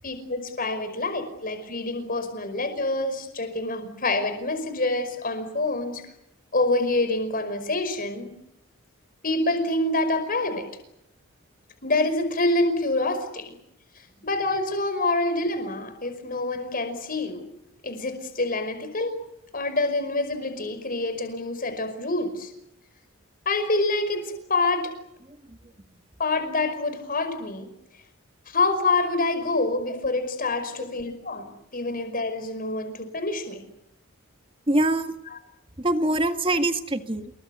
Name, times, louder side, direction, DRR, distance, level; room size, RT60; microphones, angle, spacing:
voice 1, 0.0-6.0 6.5-8.4 9.2-10.6 11.8-13.5 14.2-17.4 17.8-19.2 19.5-22.5 23.5-24.9 26.2-27.7 28.5-33.6, left 2 dB, 40° left, 9 dB, 5.2 m, -26 dB
voice 2, 34.7-35.2 35.8-37.3, right 1 dB, 25° right, 7 dB, 1.8 m, -24 dB
28.0 x 22.5 x 8.2 m, 0.80 s
head